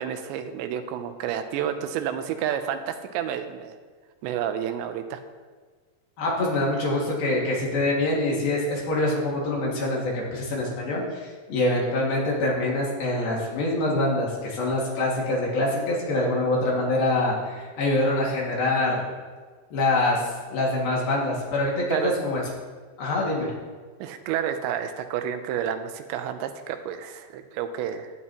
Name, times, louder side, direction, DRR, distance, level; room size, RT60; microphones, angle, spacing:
voice 1, 0.0-3.8 4.2-5.2 21.9-22.1 24.0-28.1, right 9 dB, 85° right, 8 dB, 2.9 m, -30 dB
voice 2, 6.2-19.0 19.7-22.4 23.0-23.5, left 2 dB, 60° left, -4 dB, 3.7 m, -25 dB
15.0 x 10.0 x 2.9 m, 1.5 s
omnidirectional pair, 5.0 m